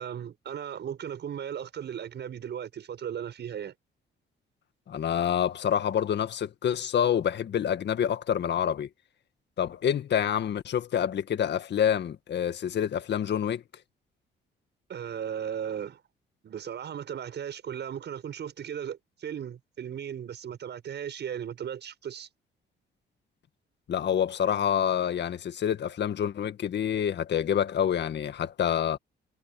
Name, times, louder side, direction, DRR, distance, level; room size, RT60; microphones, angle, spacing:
voice 1, 0.0-3.7 14.9-16.0 16.4-22.3, right 9 dB, 60° right, 7.4 m, -36 dB
voice 2, 4.9-8.9 9.6-13.6 23.9-29.0, left 9 dB, 60° left, 1.8 m, -27 dB
cardioid pair, 90°, 20 cm